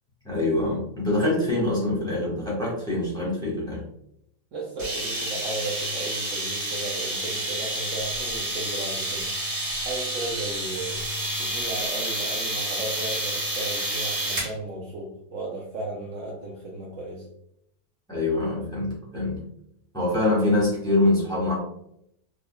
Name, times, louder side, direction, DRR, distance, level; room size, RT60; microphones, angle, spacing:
voice 1, 0.2-3.8 18.1-19.4 19.9-21.5, left 2 dB, 5° left, -7 dB, 1.1 m, -24 dB
voice 2, 4.5-9.3 9.8-11.0 11.4-17.3, right 2 dB, 65° right, -2 dB, 0.9 m, -35 dB
sound 1, 4.8-14.5, right 1 dB, 50° right, 1.9 m, -29 dB
3.7 x 3.2 x 2.2 m, 0.75 s
omnidirectional pair, 1.6 m